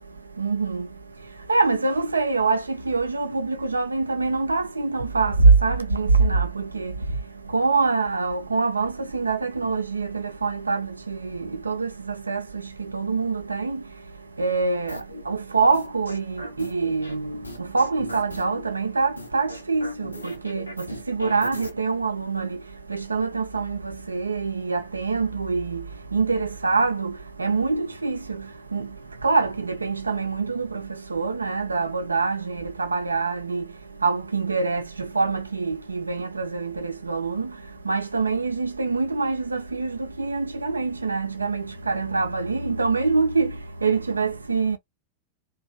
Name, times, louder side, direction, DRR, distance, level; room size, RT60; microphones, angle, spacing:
voice 1, 0.4-0.9 1.5-6.9 7.5-13.8 14.4-22.6 22.9-28.9 29.2-33.7 34.0-37.6 37.8-44.8, right 4 dB, 80° right, 0.4 m, -25 dB
sound 1, 14.9-15.2 15.7-17.1 17.4-18.6 19.2-21.7, left 1 dB, 85° left, 0.7 m, -38 dB
2.9 x 2.2 x 2.4 m
figure-of-eight pair, 90°, 0 cm